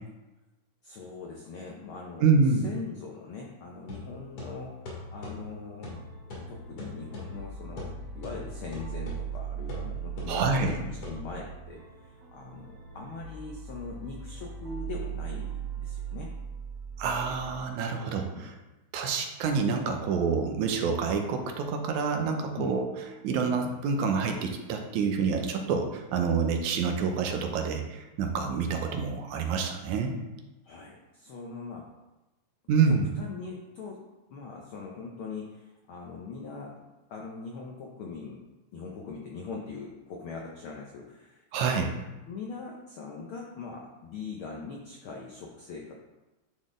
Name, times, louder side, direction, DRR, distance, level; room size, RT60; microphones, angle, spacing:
voice 1, 0.8-2.2 2.6-5.9 6.3-16.3 18.3-18.5 22.6-22.7 30.6-31.9 32.9-34.0 34.3-38.4 38.7-41.9 42.3-45.9, left 4 dB, 80° left, -1 dB, 1.2 m, -41 dB
voice 2, 2.2-2.7 10.3-10.8 17.0-18.5 18.9-22.9 23.2-30.2 32.7-33.1 41.5-41.9, right 5 dB, 85° right, 4 dB, 2.2 m, -27 dB
sound 1, 3.9-11.6, left 2 dB, 55° left, 2.6 m, -42 dB
sound 2, 5.9-17.6, right 7 dB, 60° right, 1.7 m, -40 dB
10.0 x 4.1 x 3.7 m, 1.1 s
omnidirectional pair, 3.3 m